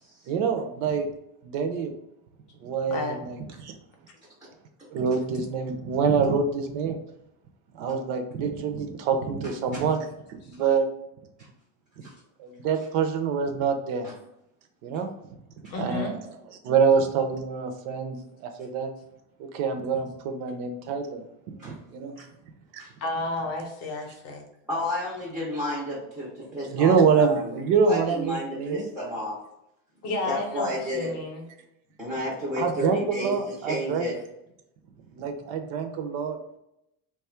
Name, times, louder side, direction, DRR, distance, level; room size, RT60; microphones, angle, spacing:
voice 1, 0.3-1.1 1.4-1.9 2.6-3.7 4.9-7.0 7.7-10.1 10.4-10.9 12.4-14.1 14.8-15.1 15.8-16.2 16.6-18.9 19.4-21.2 21.6-22.2 22.7-22.8 26.7-28.8 32.6-34.1 35.1-36.4, right 5 dB, 55° right, 6 dB, 0.5 m, -26 dB
voice 2, 15.7-16.1 23.0-24.4 30.0-31.4, left 2 dB, 35° left, 2 dB, 0.6 m, -31 dB
voice 3, 24.7-27.6 27.9-29.4 30.3-31.1 32.0-34.2, left 1 dB, ahead, -5 dB, 0.4 m, -32 dB
3.0 x 2.3 x 4.2 m, 0.83 s
cardioid pair, 170°, 42 cm